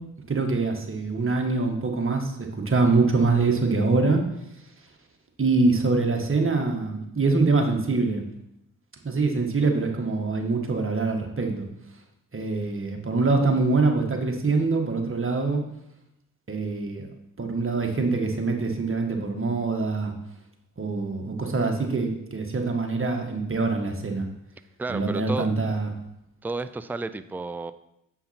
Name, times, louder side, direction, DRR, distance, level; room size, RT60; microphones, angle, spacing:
voice 1, 0.3-4.2 5.4-8.2 9.0-11.7 12.3-15.6 16.5-17.1 17.4-20.1 20.8-24.2 24.9-25.9, right 3 dB, 35° right, 3 dB, 1.6 m, -24 dB
voice 2, 24.8-25.5 26.4-27.7, right 3 dB, 5° right, 12 dB, 0.4 m, -31 dB
8.1 x 5.6 x 4.3 m, 0.81 s
cardioid pair, 50°, 35 cm